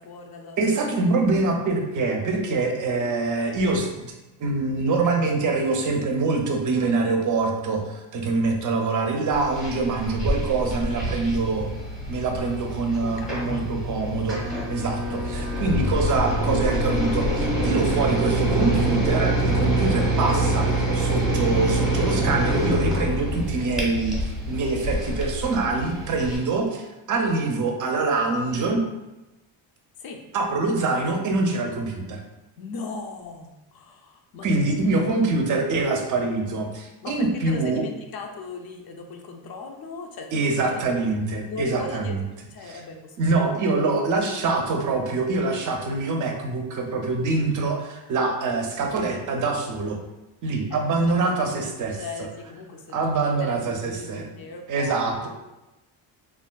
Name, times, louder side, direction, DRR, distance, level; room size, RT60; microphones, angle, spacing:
voice 1, 0.0-0.7 13.0-13.7 25.7-26.1 30.0-30.2 32.6-34.5 35.0-35.5 37.0-40.8 41.5-42.2 42.5-43.8 50.7-50.8 51.1-55.0, left 4 dB, 50° left, 2 dB, 0.5 m, -38 dB
voice 2, 0.6-3.9 4.4-7.8 8.1-11.7 12.1-14.4 14.7-24.2 24.5-26.8 27.1-28.8 30.3-32.2 34.4-37.8 40.3-42.2 43.2-47.8 48.1-50.0 50.4-52.0 52.9-54.3 54.7-55.3, right 3 dB, 40° right, 3 dB, 0.5 m, -24 dB
sound 1, 9.3-26.4, right 1 dB, ahead, 0.7 m, -25 dB
3.3 x 2.4 x 2.2 m, 1.0 s
cardioid pair, 140°, 48 cm